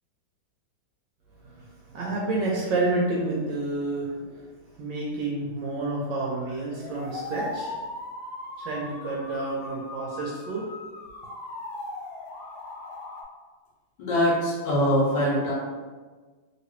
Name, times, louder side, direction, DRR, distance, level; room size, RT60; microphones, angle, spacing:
voice 1, 1.4-4.5 4.8-7.7 8.6-10.7, right 2 dB, 70° right, -4 dB, 1.1 m, -29 dB
sound 1, 6.4-13.2, left 2 dB, 85° left, 1.5 m, -38 dB
voice 2, 14.0-15.5, equal, 65° left, -5 dB, 1.3 m, -23 dB
3.0 x 2.9 x 3.1 m, 1.4 s
omnidirectional pair, 2.3 m